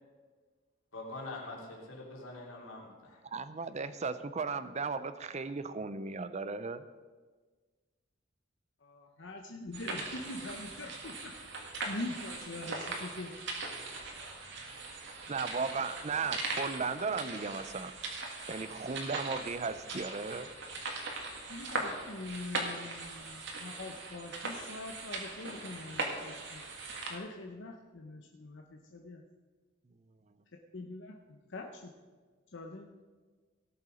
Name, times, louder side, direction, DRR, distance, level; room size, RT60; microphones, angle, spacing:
voice 1, 0.9-3.2, left 2 dB, 80° left, -3 dB, 3.2 m, -44 dB
voice 2, 3.2-6.8 15.3-17.9 18.5-20.5, right 4 dB, 35° right, 13 dB, 0.5 m, -36 dB
voice 3, 8.8-13.3 21.5-26.6 27.1-29.2 30.7-31.9 32.5-32.9, left 2 dB, 60° left, 2 dB, 0.9 m, -44 dB
sound 1, 9.7-27.1, right 3 dB, 60° right, 2.0 m, -40 dB
17.5 x 7.0 x 5.0 m, 1.4 s
head